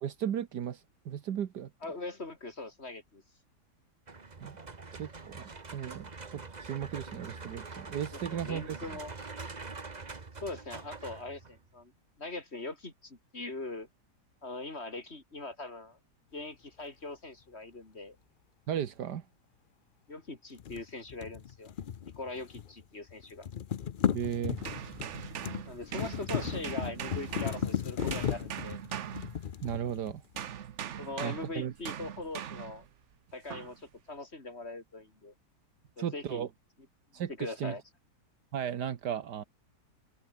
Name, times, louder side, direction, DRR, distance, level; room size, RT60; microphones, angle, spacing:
voice 1, 0.0-1.7 4.4-4.6 4.9-8.8 18.7-19.2 24.1-24.6 29.6-30.2 31.2-31.7 36.0-36.5 37.1-37.7 38.5-39.4, right 9 dB, 75° right, 1.8 m, -35 dB
voice 2, 1.8-3.2 8.1-9.1 10.4-11.9 12.2-13.9 14.4-16.0 16.3-18.2 20.1-21.7 22.0-23.5 25.7-28.8 31.0-32.9 33.3-35.3 36.0-36.5 37.2-37.8, left 2 dB, 35° left, 4.3 m, -41 dB
sound 1, 4.1-11.7, right 4 dB, 25° right, 1.4 m, -44 dB
sound 2, 20.6-22.8 23.1-30.4, left 8 dB, 80° left, 0.4 m, -36 dB
sound 3, 24.6-29.9 30.4-32.9 33.5-33.8, right 9 dB, 55° right, 1.0 m, -41 dB
omnidirectional pair, 1.8 m